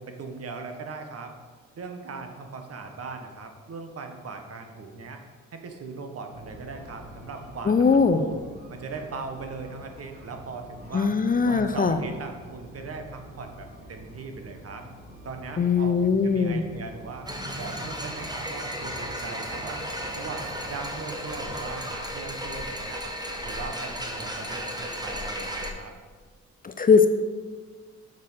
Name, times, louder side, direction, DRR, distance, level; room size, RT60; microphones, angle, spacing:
voice 1, 0.0-1.3 1.7-5.2 5.5-8.4 8.7-11.1 11.4-14.8 15.2-17.3 17.6-19.8 20.1-23.0 23.4-25.9, right 4 dB, 50° right, 5 dB, 1.5 m, -39 dB
sound 1, 6.3-21.8, equal, 30° right, 2.6 m, -46 dB
voice 2, 7.6-8.2 10.9-12.0 15.6-16.6 26.6-27.1, left 5 dB, 30° left, 9 dB, 0.6 m, -20 dB
sound 2, 17.3-25.7, equal, 15° right, 1.5 m, -34 dB
7.4 x 6.2 x 7.4 m, 1.5 s
cardioid pair, 85°, 30 cm